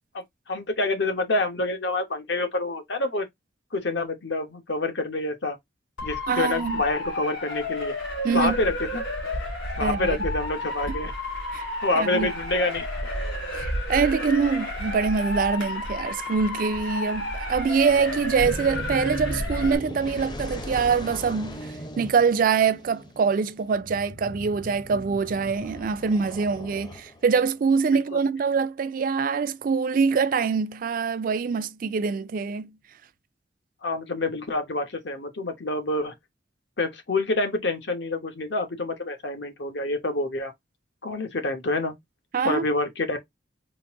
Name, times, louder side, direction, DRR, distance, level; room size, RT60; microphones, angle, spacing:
voice 1, 0.5-3.3 3.7-5.6 6.0-7.9 8.3-9.0 9.8-11.1 11.8-12.9 33.8-36.1 36.8-40.5 41.0-41.9 42.4-43.2, left 2 dB, 70° left, 1.0 m, -27 dB
Motor vehicle (road) / Siren, 6.0-19.8, left 1 dB, 90° left, 2.5 m, -31 dB
voice 2, 6.3-6.8 8.2-8.5 9.8-10.1 11.5-11.7 12.0-12.3 13.5-32.7 42.3-42.6, right 5 dB, 45° right, 0.3 m, -24 dB
sound 1, 17.9-27.4, left 1 dB, 25° left, 0.6 m, -39 dB
3.9 x 2.5 x 3.5 m
head